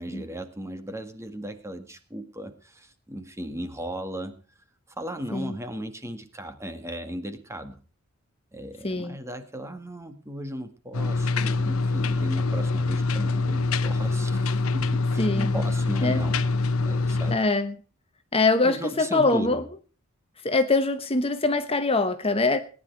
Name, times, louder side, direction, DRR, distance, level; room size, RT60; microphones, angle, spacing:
voice 1, 0.0-4.3 5.0-7.8 8.5-16.5 16.8-17.4 18.6-19.6, right 1 dB, 15° right, 8 dB, 1.8 m, -36 dB
voice 2, 8.8-9.2 15.2-15.5 16.0-16.2 17.3-17.7 18.3-19.6 20.4-22.6, left 3 dB, 25° left, 8 dB, 1.1 m, -23 dB
sound 1, 10.9-17.4, left 3 dB, 70° left, 1.0 m, -25 dB
18.5 x 10.5 x 4.6 m, 0.39 s
head